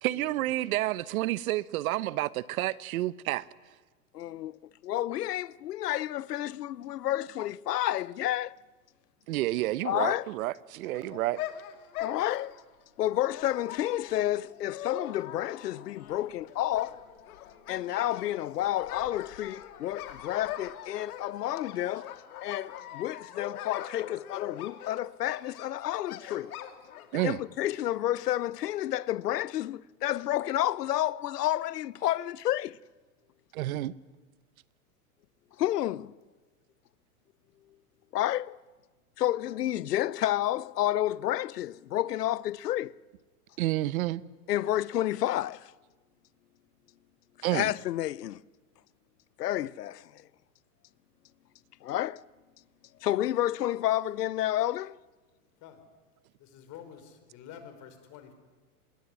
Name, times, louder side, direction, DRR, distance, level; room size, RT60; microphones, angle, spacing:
voice 1, 0.0-3.5 9.3-11.4 27.1-27.4 33.5-33.9 43.6-44.2 47.4-47.7, right 16 dB, 65° right, 1.1 m, -30 dB
voice 2, 4.1-8.6 9.8-10.3 12.0-12.6 13.0-17.0 17.7-22.1 22.4-26.5 27.2-32.8 35.6-36.1 38.1-38.6 39.2-42.9 44.5-45.7 47.5-48.4 49.4-50.1 51.8-52.2 53.0-55.0, left 13 dB, 85° left, 0.8 m, -30 dB
sound 1, 10.9-27.4, left 11 dB, 65° left, 2.9 m, -42 dB
voice 3, 56.4-58.3, left 8 dB, 40° left, 5.0 m, -48 dB
26.0 x 21.5 x 9.8 m
hypercardioid pair, 130°, 46 cm